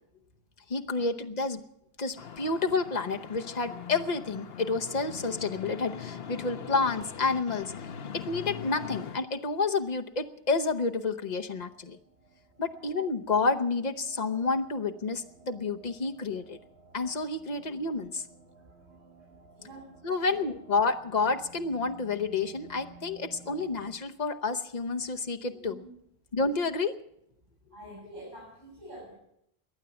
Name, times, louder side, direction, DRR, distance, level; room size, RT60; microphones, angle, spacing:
voice 1, 0.7-1.6 2.0-7.7 8.1-12.0 12.6-16.6 16.9-18.2 20.0-25.8 26.3-27.0, left 4 dB, 45° left, 5 dB, 1.0 m, -29 dB
sound 1, 2.2-9.2, left 7 dB, 70° left, 1.1 m, -41 dB
sound 2, 11.6-23.9, right 3 dB, 80° right, 1.8 m, -55 dB
voice 2, 27.7-29.1, right 1 dB, 55° right, -7 dB, 7.5 m, -47 dB
21.5 x 9.0 x 7.0 m, 0.76 s
omnidirectional pair, 1.1 m